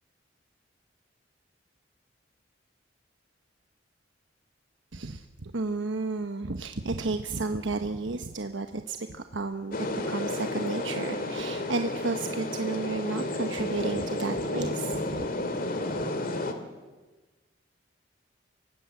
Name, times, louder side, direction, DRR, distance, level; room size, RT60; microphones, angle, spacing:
voice 1, 4.9-15.3, right 3 dB, 80° right, 6 dB, 1.0 m, -32 dB
sound 1, 9.7-16.5, left 1 dB, 50° left, 2.1 m, -31 dB
24.5 x 18.0 x 7.9 m, 1.3 s
head